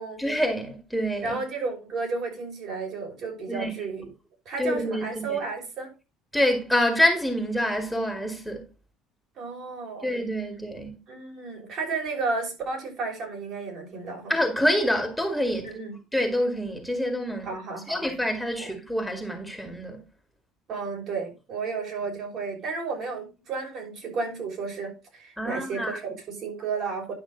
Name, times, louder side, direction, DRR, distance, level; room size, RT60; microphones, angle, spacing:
voice 1, 0.2-1.4 3.5-3.8 4.6-5.4 6.3-8.7 10.0-10.9 14.3-15.7 16.1-17.5 17.9-20.0 25.4-26.0, equal, 5° left, 2.1 m, -26 dB
voice 2, 1.2-4.1 4.5-5.9 9.4-10.1 11.1-14.3 15.6-16.0 17.4-18.1 18.6-18.7 20.7-27.1, right 4 dB, 55° right, 5.7 m, -32 dB
11.0 x 5.9 x 3.9 m
cardioid pair, 105°, 0 cm